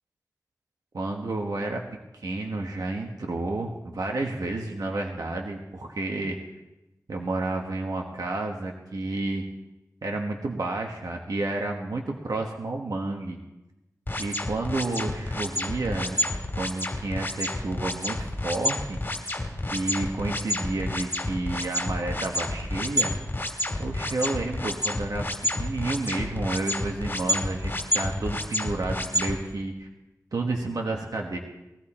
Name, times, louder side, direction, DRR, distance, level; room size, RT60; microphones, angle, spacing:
voice 1, 0.9-1.8 2.1-6.4 7.1-9.5 10.0-13.4 14.2-16.3 16.6-19.0 19.7-23.1 23.8-25.3 25.6-29.9 30.3-31.4, right 2 dB, 80° right, 1 dB, 1.4 m, -30 dB
sound 1, 14.1-29.4, left 1 dB, 35° left, 2.5 m, -29 dB
20.0 x 14.5 x 4.3 m, 0.99 s
wide cardioid pair, 60°, 6 cm